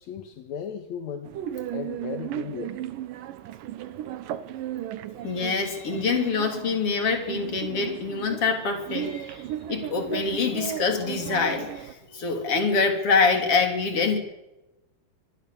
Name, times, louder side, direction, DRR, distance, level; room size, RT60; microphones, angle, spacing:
voice 1, 0.0-1.3 1.7-2.8, left 8 dB, 60° left, 6 dB, 2.2 m, -36 dB
sound 1, 1.3-11.9, right 11 dB, 70° right, 2.4 m, -36 dB
voice 2, 5.2-9.4 9.7-14.2, left 4 dB, 35° left, 4 dB, 4.0 m, -25 dB
26.0 x 20.5 x 7.2 m, 1.0 s
omnidirectional pair, 4.6 m